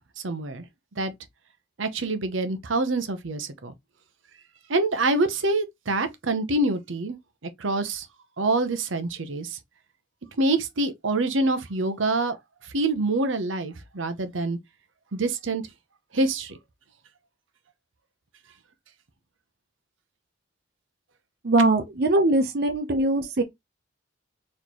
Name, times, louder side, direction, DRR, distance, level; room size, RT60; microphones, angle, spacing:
voice 1, 0.2-0.6 1.0-1.1 1.8-3.7 4.7-7.2 7.4-8.1 8.4-9.6 10.4-12.4 12.6-14.6 15.1-15.6 16.1-16.6, right 2 dB, 90° right, 0.8 m, -26 dB
voice 2, 21.4-23.4, right 2 dB, 55° right, 0.7 m, -21 dB
4.2 x 3.3 x 3.0 m
head